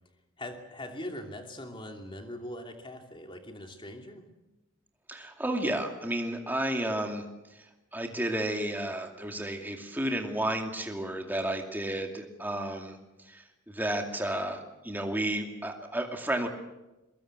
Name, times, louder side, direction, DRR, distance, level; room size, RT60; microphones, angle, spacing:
voice 1, 0.4-4.2, left 1 dB, 25° left, 4 dB, 2.7 m, -41 dB
voice 2, 5.1-7.2 7.9-13.0 13.3-16.5, right 1 dB, 10° right, 3 dB, 2.4 m, -32 dB
22.5 x 22.5 x 7.7 m, 1.0 s
head